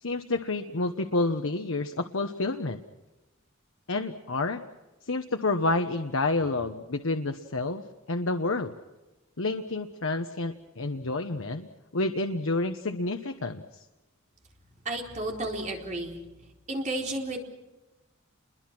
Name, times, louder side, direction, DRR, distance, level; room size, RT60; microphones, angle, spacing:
voice 1, 0.0-2.8 3.9-4.6 5.1-7.8 8.1-8.7 9.4-11.7 11.9-13.8, left 2 dB, 70° left, 6 dB, 1.1 m, -29 dB
voice 2, 14.8-16.2 16.7-17.4, right 2 dB, 35° right, 1 dB, 4.2 m, -32 dB
29.5 x 22.5 x 6.1 m, 1.1 s
head